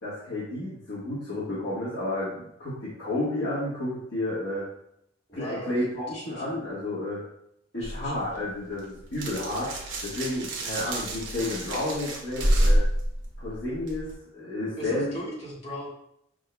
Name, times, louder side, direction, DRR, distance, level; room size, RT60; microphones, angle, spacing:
voice 1, 0.0-4.6 5.3-7.2 7.7-9.7 10.0-12.8 13.4-15.1, left 1 dB, 70° left, -10 dB, 1.4 m, -31 dB
voice 2, 5.3-5.8 6.1-6.6 7.7-8.3 14.8-15.9, equal, 35° left, -6 dB, 1.7 m, -38 dB
sound 1, 7.8-14.1, right 1 dB, 80° right, 0.9 m, -28 dB
5.4 x 3.7 x 2.2 m, 0.73 s
head